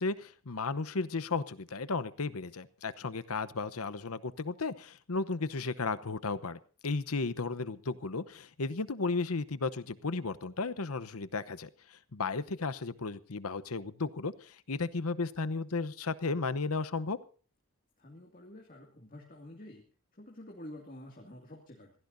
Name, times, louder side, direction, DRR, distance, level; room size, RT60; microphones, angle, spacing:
voice 1, 0.0-17.2, left 3 dB, 80° left, 14 dB, 0.9 m, -34 dB
voice 2, 18.0-19.8 20.1-21.9, left 1 dB, 40° left, 0 dB, 2.4 m, -49 dB
25.0 x 17.0 x 2.7 m, 0.40 s
head